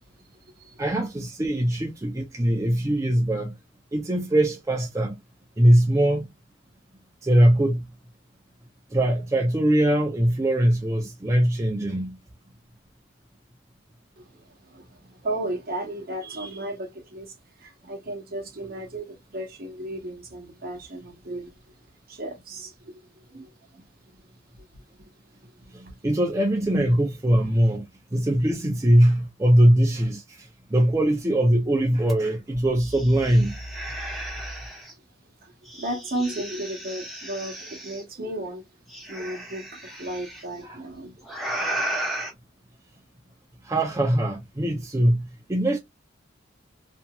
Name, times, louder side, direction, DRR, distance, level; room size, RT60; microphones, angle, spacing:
voice 1, 0.8-3.5 3.9-5.2 5.6-6.3 7.2-7.9 8.9-12.2 25.7-27.8 28.1-33.6 39.1-39.2 40.6-40.8 43.6-45.8, right 1 dB, 15° right, 0.4 m, -21 dB
voice 2, 14.2-21.5 22.1-23.0 23.3-23.5 35.4-38.7 39.0-41.1, right 1 dB, 50° right, 0.9 m, -34 dB
sound 1, 32.1-32.2 32.5-34.9 35.6-38.0 38.9-40.4 41.2-42.3, right 1 dB, ahead, 0.9 m, -34 dB
2.8 x 2.6 x 2.2 m
head